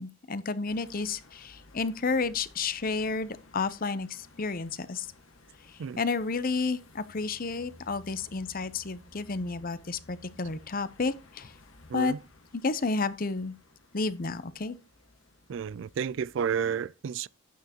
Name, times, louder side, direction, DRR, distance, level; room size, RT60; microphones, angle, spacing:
voice 1, 0.0-5.1 5.7-11.5 11.9-12.1 12.5-13.6 13.9-14.8, left 4 dB, 45° left, 0.7 m, -31 dB
sound 1, 0.7-16.7, left 2 dB, 75° left, 1.7 m, -56 dB
voice 2, 15.5-17.3, right 7 dB, 65° right, 0.3 m, -31 dB
9.3 x 9.3 x 2.9 m
head